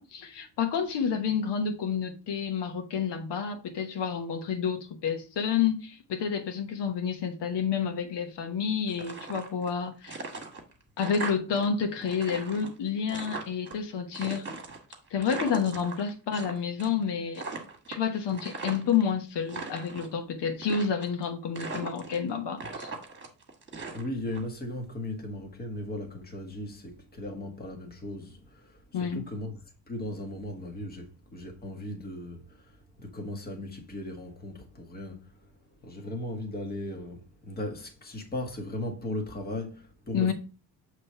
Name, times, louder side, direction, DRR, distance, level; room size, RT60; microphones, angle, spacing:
voice 1, 0.0-10.2 11.0-14.5 15.1-17.4 17.9-22.9 28.9-29.3 40.1-40.3, left 7 dB, 85° left, 1.1 m, -29 dB
sound 1, 8.9-9.8 10.0-11.7 11.9-13.7 14.1-16.5 16.8-17.1 17.3-19.0 19.4-20.1 20.6-21.2 21.6-22.3 22.6-24.4, right 4 dB, 30° right, 1.5 m, -39 dB
voice 2, 23.9-29.6 29.9-35.2 35.8-40.3, left 1 dB, 25° left, 1.3 m, -37 dB
7.2 x 3.2 x 5.5 m
cardioid pair, 170°, 40 cm